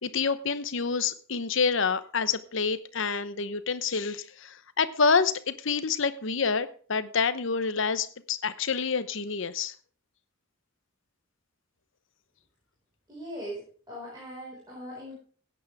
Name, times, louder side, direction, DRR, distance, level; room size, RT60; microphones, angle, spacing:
voice 1, 0.0-9.7, left 5 dB, 65° left, 13 dB, 0.9 m, -27 dB
voice 2, 13.1-13.6 13.9-15.2, equal, 20° right, -6 dB, 5.2 m, -39 dB
16.5 x 9.3 x 3.5 m, 0.43 s
head